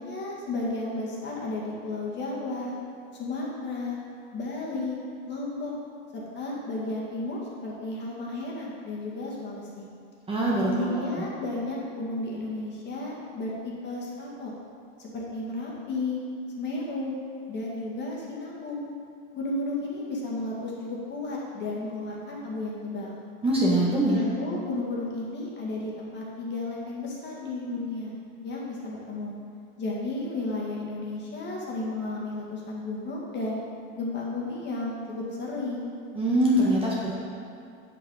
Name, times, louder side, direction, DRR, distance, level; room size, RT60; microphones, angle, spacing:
voice 1, 0.0-2.7 3.2-4.0 4.3-5.0 5.3-5.7 6.1-9.9 10.7-14.5 15.0-16.2 16.6-17.2 17.5-18.8 19.3-23.1 24.0-28.1 28.4-29.3 29.8-33.6 34.0-35.9, left 2 dB, 30° left, -4 dB, 1.9 m, -33 dB
voice 2, 10.3-11.2 23.4-24.2 36.1-37.1, right 1 dB, 15° right, -6 dB, 1.3 m, -23 dB
8.2 x 7.5 x 4.0 m, 2.4 s
supercardioid pair, 130°, 37 cm